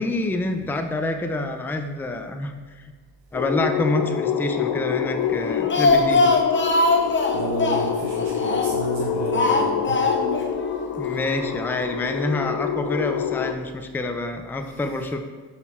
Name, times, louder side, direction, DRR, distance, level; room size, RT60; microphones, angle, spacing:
voice 1, 0.0-2.9 3.3-6.3 11.0-15.2, left 2 dB, 5° left, 6 dB, 0.4 m, -27 dB
sound 1, 3.3-13.5, left 8 dB, 55° left, 0.6 m, -27 dB
Speech, 5.4-8.9 9.3-10.5 10.7-10.8 11.1-11.2, left 3 dB, 25° left, 0.8 m, -21 dB
voice 2, 6.9-10.5 14.6-14.8, right 2 dB, 65° right, -1 dB, 1.0 m, -32 dB
5.8 x 4.1 x 4.3 m, 1.5 s
hypercardioid pair, 55°, 49 cm